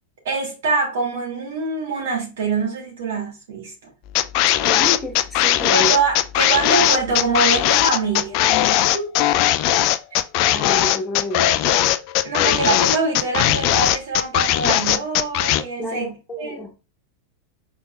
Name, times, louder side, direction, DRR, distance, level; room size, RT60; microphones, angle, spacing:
voice 1, 0.2-3.7 5.7-8.5 8.9-9.1 12.2-16.6, right 4 dB, 60° right, 2.3 m, -24 dB
sound 1, 4.1-15.6, left 13 dB, 45° left, 0.3 m, -18 dB
voice 2, 4.6-5.9 10.5-11.5 15.8-16.7, left 1 dB, 15° left, 1.2 m, -29 dB
5.2 x 3.7 x 2.5 m
figure-of-eight pair, 90°, 0 cm